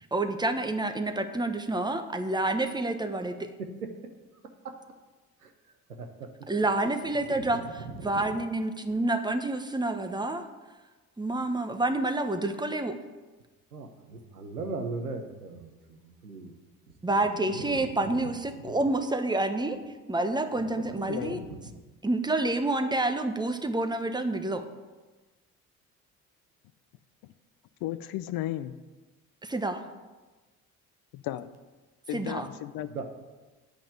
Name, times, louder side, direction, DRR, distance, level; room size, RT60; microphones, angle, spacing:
voice 1, 0.1-3.5 6.5-7.6 8.0-10.4 11.2-13.0 17.0-19.8 20.1-21.4 22.0-24.6 29.4-29.8 32.1-32.5, right 2 dB, 10° right, 7 dB, 1.2 m, -28 dB
voice 2, 6.0-6.3 7.4-8.4 13.7-16.5 17.1-18.3 18.6-18.8 20.8-20.9 21.3-21.6 32.9-33.0, right 3 dB, 90° right, 5 dB, 1.0 m, -39 dB
voice 3, 20.7-21.4 27.2-27.3 27.8-28.7 31.1-31.5 32.1-32.9, left 14 dB, 55° left, 14 dB, 0.6 m, -35 dB
9.1 x 5.5 x 8.1 m, 1.2 s
figure-of-eight pair, 55°, 43 cm